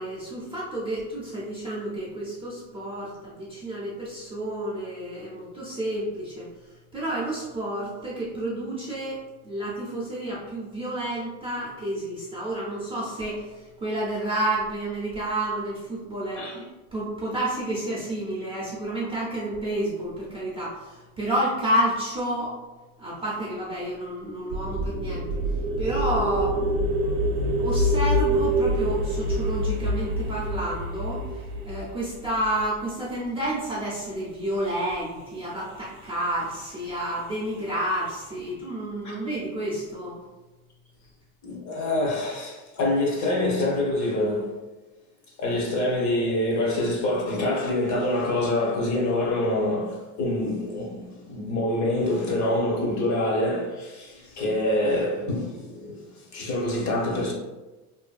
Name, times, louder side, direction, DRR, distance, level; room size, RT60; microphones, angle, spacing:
voice 1, 0.0-6.5 6.9-22.5 23.0-25.3 25.8-31.2 31.6-40.2, right 1 dB, 15° right, 0.4 m, -30 dB
sound 1, 24.5-32.6, right 1 dB, 85° right, 0.5 m, -26 dB
voice 2, 41.4-44.6 45.4-57.3, left 1 dB, 40° left, 0.7 m, -26 dB
2.6 x 2.5 x 2.3 m
cardioid pair, 130°, 44 cm